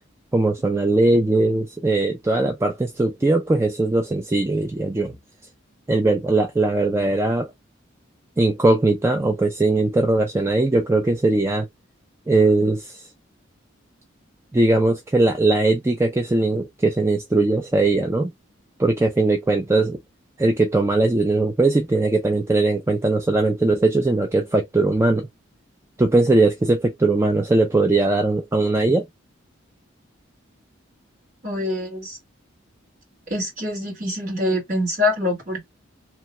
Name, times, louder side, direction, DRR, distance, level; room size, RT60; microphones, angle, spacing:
voice 1, 0.3-5.2 5.9-7.5 8.4-11.7 12.3-13.1 14.5-18.3 18.8-20.0 20.4-25.3 26.0-29.1, right 2 dB, 15° right, 0.3 m, -20 dB
voice 2, 31.4-32.2 33.3-35.6, left 1 dB, 40° right, 1.5 m, -25 dB
2.9 x 2.1 x 2.9 m
head